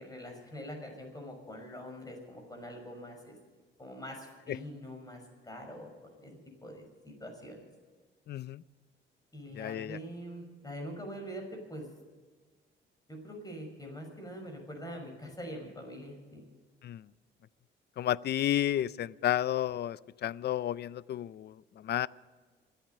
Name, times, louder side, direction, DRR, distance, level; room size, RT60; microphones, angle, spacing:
voice 1, 0.0-3.3 3.8-7.6 9.3-11.9 13.1-16.4, equal, 20° left, 3 dB, 6.0 m, -44 dB
voice 2, 8.3-8.6 9.6-10.0 16.8-17.0 18.0-22.1, left 12 dB, 55° left, 20 dB, 0.5 m, -32 dB
28.0 x 9.3 x 5.5 m, 1.4 s
cardioid pair, 90°, 20 cm